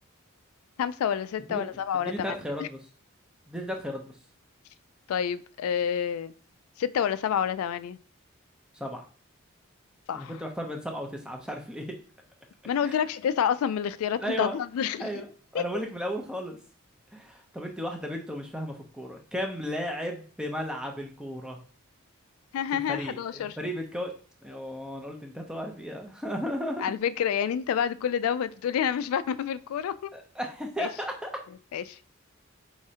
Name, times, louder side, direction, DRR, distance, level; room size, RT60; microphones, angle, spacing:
voice 1, 0.8-2.4 5.1-6.3 6.8-8.0 10.1-10.3 12.7-15.2 15.5-15.6 22.5-23.6 26.8-30.1 30.8-30.9 31.7-32.0, left 8 dB, 85° left, 14 dB, 0.3 m, -28 dB
voice 2, 1.5-2.8 3.5-4.1 8.7-9.0 10.1-11.9 12.8-13.0 14.2-14.6 15.0-16.6 17.1-21.6 22.7-24.1 24.4-26.8 30.1-31.3, equal, 5° right, 2 dB, 0.6 m, -35 dB
4.8 x 3.1 x 2.8 m, 0.42 s
head